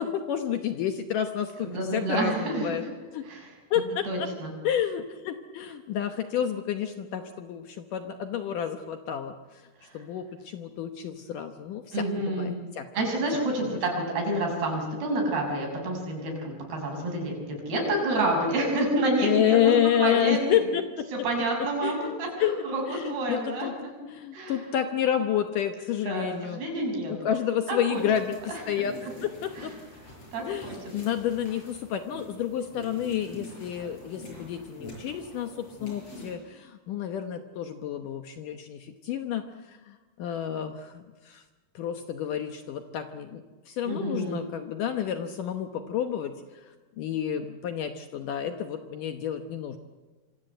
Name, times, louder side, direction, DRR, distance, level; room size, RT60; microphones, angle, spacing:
voice 1, 0.0-2.8 3.1-3.3 3.7-4.3 4.6-9.6 9.9-12.9 13.6-13.8 19.2-21.1 21.8-22.1 22.4-23.8 24.0-26.6 27.1-29.7 30.5-41.4 41.8-46.7 47.0-49.8, left 9 dB, 70° left, 7 dB, 2.2 m, -30 dB
voice 2, 1.6-2.9 3.2-3.5 4.0-4.5 9.8-10.0 11.9-12.6 12.9-20.4 21.2-23.7 24.3-24.6 26.1-26.3 26.5-27.1 27.7-28.0 28.5-28.9 29.6-29.7 30.3-30.8 43.8-44.4, right 1 dB, 70° right, 1 dB, 8.3 m, -29 dB
sound 1, 27.9-36.3, left 1 dB, 35° left, 7.9 m, -45 dB
26.5 x 24.5 x 8.0 m, 1.3 s
omnidirectional pair, 4.8 m